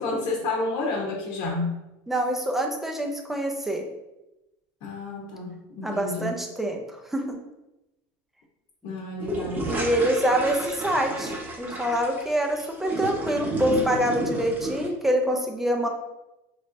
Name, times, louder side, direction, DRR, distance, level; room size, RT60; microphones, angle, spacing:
voice 1, 0.0-1.7 4.8-6.4 8.8-9.7, left 3 dB, 65° left, -3 dB, 0.9 m, -30 dB
voice 2, 2.1-3.8 5.8-6.8 7.1-7.4 9.7-15.9, right 1 dB, 5° right, 2 dB, 0.5 m, -25 dB
sound 1, 9.2-14.9, right 1 dB, 20° right, 0.8 m, -31 dB
5.0 x 3.3 x 2.6 m, 0.96 s
cardioid pair, 155°, 9 cm